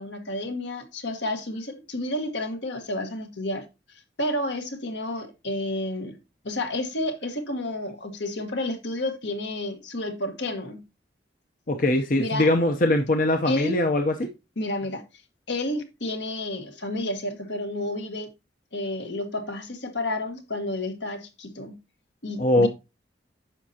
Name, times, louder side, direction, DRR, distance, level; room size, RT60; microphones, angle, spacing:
voice 1, 0.0-3.6 4.2-6.2 6.4-10.8 12.2-12.5 13.4-13.8 14.6-15.0 15.5-18.3 18.7-21.8 22.2-22.7, left 1 dB, 75° left, 1.6 m, -30 dB
voice 2, 11.7-14.3 22.4-22.7, left 1 dB, 45° left, 0.7 m, -22 dB
9.7 x 6.4 x 2.8 m
head